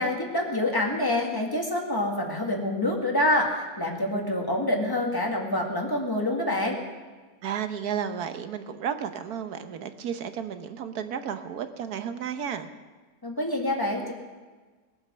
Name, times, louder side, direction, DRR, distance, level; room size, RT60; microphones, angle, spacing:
voice 1, 0.0-6.8 13.2-14.1, left 1 dB, 15° left, 1 dB, 1.9 m, -26 dB
voice 2, 7.4-12.7, right 8 dB, 65° right, 9 dB, 1.4 m, -33 dB
21.0 x 7.9 x 6.2 m, 1.3 s
omnidirectional pair, 1.8 m